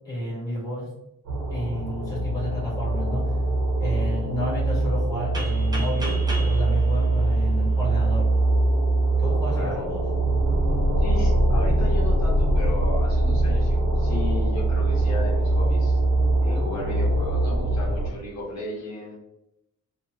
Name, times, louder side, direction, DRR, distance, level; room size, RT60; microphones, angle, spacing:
voice 1, 0.0-0.9 1.5-3.4 3.8-8.3 9.2-10.0, equal, 10° left, -7 dB, 1.3 m, -31 dB
sound 1, 1.2-18.1, right 2 dB, 70° right, 0.9 m, -22 dB
sound 2, 5.3-8.1, right 1 dB, 15° right, 0.5 m, -36 dB
voice 2, 9.5-9.8 11.0-16.0 16.4-19.2, left 1 dB, 65° left, -4 dB, 0.9 m, -35 dB
2.4 x 2.2 x 3.1 m, 0.87 s
wide cardioid pair, 145°, 30 cm